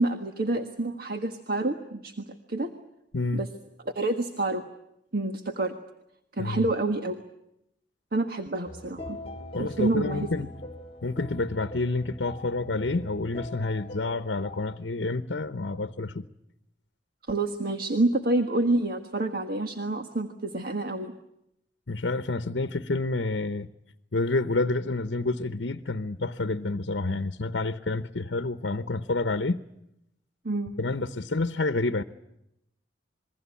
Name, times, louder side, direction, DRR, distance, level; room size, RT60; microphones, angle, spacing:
voice 1, 0.0-2.7 3.3-3.5 3.9-4.7 5.1-5.7 6.3-7.2 8.1-9.2 9.6-10.3 17.3-21.1 30.4-30.8, right 2 dB, 55° right, 1.5 m, -28 dB
sound 1, 8.7-14.8, left 1 dB, 30° left, 1.9 m, -42 dB
voice 2, 9.5-10.5 11.0-16.3 21.9-23.7 24.1-29.6 30.8-32.0, left 2 dB, 70° left, 0.9 m, -29 dB
27.0 x 22.0 x 8.5 m
head